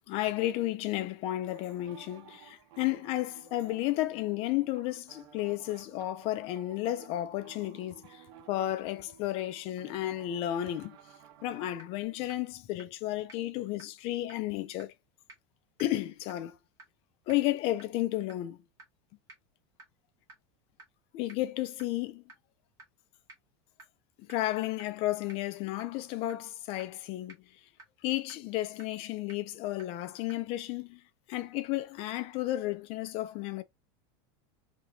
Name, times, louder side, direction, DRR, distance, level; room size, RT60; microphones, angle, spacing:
voice 1, 0.1-11.0 11.4-14.9 15.8-16.6 17.3-18.6 21.1-22.2 24.2-27.4 28.0-31.0 31.3-33.6, left 15 dB, 45° left, 0.7 m, -33 dB
sound 1, 1.5-12.0, right 8 dB, 70° right, 1.2 m, -56 dB
sound 2, 11.3-11.4 11.8-11.9 12.3-12.4 12.8-12.9 13.3-13.4 13.8-13.9 14.3-14.4 14.8-14.9 15.3-15.4 15.8-15.9 16.3-16.4 16.8-16.9 17.3-17.4 17.8-17.9 18.3-18.4 18.8-18.9 19.3-19.4 19.8-19.9 20.3-20.4 20.8-20.9 21.3-21.4 21.8-21.9 22.3-22.4 22.8-22.9 23.3-23.4 23.8-23.9 24.3-24.4 24.8-24.9 25.3-25.4 25.8-25.9 26.3-26.4 26.8-26.9 27.3-27.4 27.8-27.9 28.3-28.4 28.8-28.9 29.3-29.4 29.8-29.9 30.3-30.4, right 3 dB, 25° right, 1.6 m, -50 dB
3.6 x 3.0 x 2.7 m
supercardioid pair, 150°, 14 cm